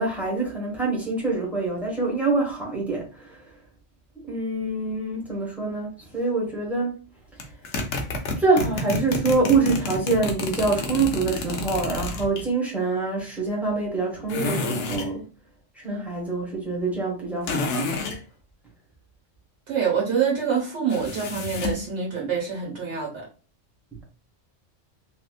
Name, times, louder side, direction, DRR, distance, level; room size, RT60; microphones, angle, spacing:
voice 1, 0.0-3.5 4.1-7.0 8.4-15.3 15.7-17.8, right 3 dB, ahead, 1.1 m, -25 dB
sound 1, 7.4-12.4 14.3-15.1 17.4-18.2 20.9-21.9, left 2 dB, 70° left, 0.9 m, -29 dB
voice 2, 19.7-23.3, right 6 dB, 65° right, 1.7 m, -26 dB
3.3 x 2.7 x 2.4 m
omnidirectional pair, 1.3 m